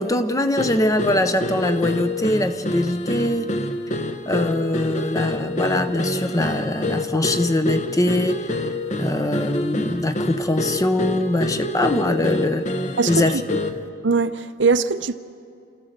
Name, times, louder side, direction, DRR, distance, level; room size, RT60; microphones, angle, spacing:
voice 1, 0.0-3.5 4.3-8.5 9.0-12.7 13.1-13.4, left 1 dB, 20° left, 0.8 m, -22 dB
sound 1, 0.6-13.9, left 1 dB, 40° left, 1.0 m, -27 dB
voice 2, 13.0-13.3 14.0-15.1, right 4 dB, 80° right, 0.7 m, -21 dB
28.5 x 14.5 x 6.7 m
head